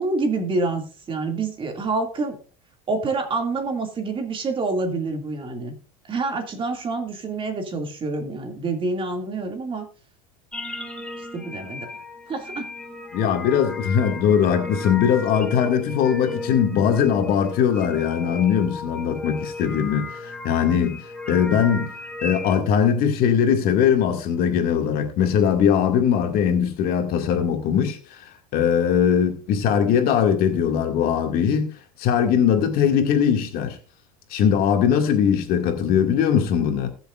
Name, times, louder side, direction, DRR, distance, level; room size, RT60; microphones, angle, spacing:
voice 1, 0.0-2.4 2.9-5.7 6.0-9.9 11.3-11.9 12.3-12.7, right 3 dB, 30° right, 2.5 m, -27 dB
sound 1, 10.5-22.6, left 3 dB, 5° left, 1.8 m, -35 dB
voice 2, 13.1-21.0 21.3-21.9 22.2-31.7 32.0-33.8 34.3-36.9, left 8 dB, 55° left, 2.3 m, -20 dB
20.5 x 6.9 x 2.5 m
supercardioid pair, 110°, 18 cm